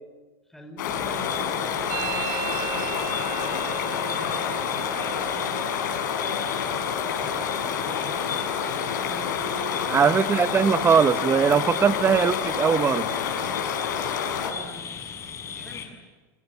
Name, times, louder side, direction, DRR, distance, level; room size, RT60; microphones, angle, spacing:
voice 1, 0.5-5.8 6.9-8.3 8.8-10.4 14.5-15.0 15.4-16.0, equal, 5° left, 5 dB, 5.3 m, -45 dB
sound 1, 0.8-14.5, left 7 dB, 80° left, 5.9 m, -28 dB
sound 2, 0.9-15.9, left 7 dB, 30° left, 6.7 m, -37 dB
Musical instrument, 1.9-9.5 9.8-10.4 10.6-11.2 11.5-13.5, right 12 dB, 50° right, 2.2 m, -39 dB
voice 2, 9.9-13.1, right 6 dB, 25° right, 12 dB, 1.1 m, -20 dB
28.5 x 24.0 x 8.6 m, 1.3 s
supercardioid pair, 120°, 10 cm